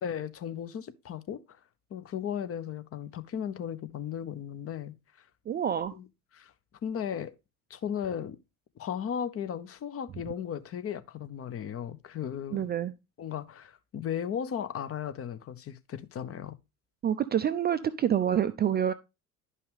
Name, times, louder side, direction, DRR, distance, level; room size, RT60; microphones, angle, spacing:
voice 1, 0.0-1.6 1.9-5.3 5.9-6.1 6.3-6.5 6.8-7.3 7.7-8.4 8.8-12.7 13.2-16.6, left 8 dB, 30° left, 0.8 m, -36 dB
voice 2, 5.5-5.9 12.5-12.9 17.0-18.9, right 9 dB, 25° right, 0.4 m, -27 dB
11.0 x 5.5 x 3.3 m
figure-of-eight pair, 60°, 44 cm